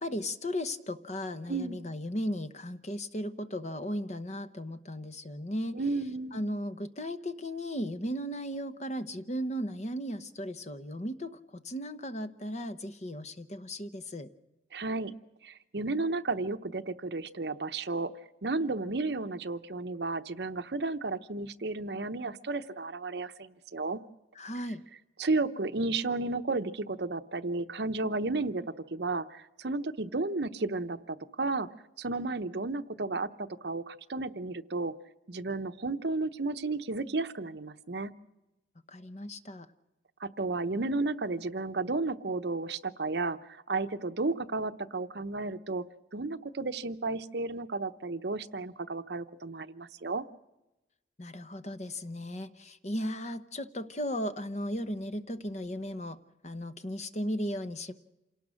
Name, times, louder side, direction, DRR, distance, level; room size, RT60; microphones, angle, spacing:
voice 1, 0.0-5.8 6.3-14.3 24.3-24.8 38.9-39.7 51.2-57.9, equal, 40° left, 10 dB, 1.0 m, -36 dB
voice 2, 5.7-6.4 14.7-15.1 15.4-18.1 18.4-24.0 25.2-28.6 28.9-31.7 32.0-34.9 35.3-38.1 40.2-45.8 46.1-50.2, right 3 dB, 65° right, 10 dB, 0.9 m, -33 dB
28.0 x 18.0 x 6.4 m, 0.98 s
head